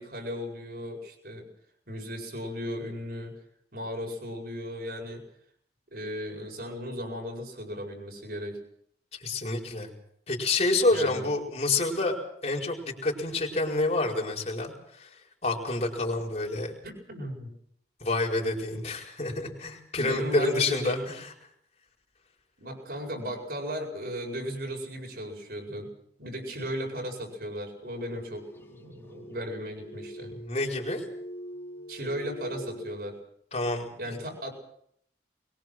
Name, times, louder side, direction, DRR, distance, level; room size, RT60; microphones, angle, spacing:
voice 1, 0.0-1.5 1.9-3.3 3.7-5.2 5.9-8.6 10.9-11.3 16.8-17.5 20.0-21.1 22.6-25.9 26.2-30.4 31.9-33.2 34.0-34.5, equal, 60° right, 2 dB, 7.9 m, -36 dB
voice 2, 9.1-9.9 10.3-12.2 12.4-16.7 18.0-21.3 30.3-31.0 33.5-34.2, left 2 dB, 35° left, 0 dB, 4.9 m, -28 dB
sound 1, 27.8-33.0, equal, 15° left, 4.0 m, -44 dB
23.0 x 21.5 x 6.3 m, 0.69 s
head